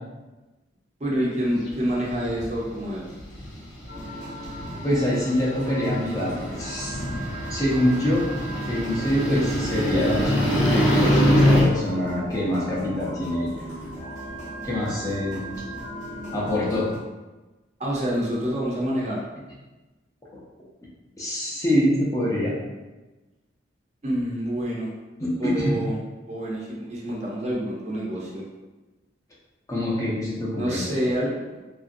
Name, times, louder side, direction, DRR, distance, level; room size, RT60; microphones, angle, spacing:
voice 1, 1.0-3.1 17.8-19.2 24.0-24.9 25.4-26.0 26.3-28.4 30.6-31.6, equal, 35° right, -4 dB, 0.6 m, -27 dB
sound 1, 1.4-2.6 3.2-11.6, equal, 75° left, 0.7 m, -24 dB
sound 2, 3.9-17.0, right 1 dB, 40° left, 0.9 m, -37 dB
voice 2, 4.8-7.0 7.5-8.3 8.6-13.5 14.6-15.4 16.3-16.9 20.3-20.4 21.2-22.5 25.2-25.8 29.7-30.8, left 1 dB, 15° left, -6 dB, 0.5 m, -25 dB
3.0 x 2.5 x 2.5 m, 1.1 s
head